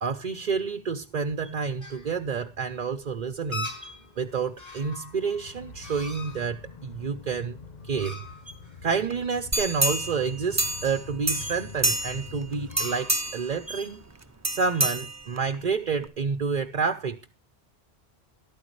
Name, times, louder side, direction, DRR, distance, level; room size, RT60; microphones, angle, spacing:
voice 1, 0.0-3.7 4.2-7.6 7.8-8.2 8.8-14.0 14.5-17.3, right 5 dB, 50° right, 0.9 m, -29 dB
sound 1, 1.0-15.9, left 2 dB, 15° left, 2.1 m, -43 dB
sound 2, 3.5-12.9, left 5 dB, 45° left, 1.0 m, -46 dB
sound 3, 9.5-11.0 11.3-12.3 12.7-13.5 14.4-15.6 16.0-16.1, right 1 dB, 20° right, 0.7 m, -27 dB
13.5 x 12.5 x 3.1 m
omnidirectional pair, 1.1 m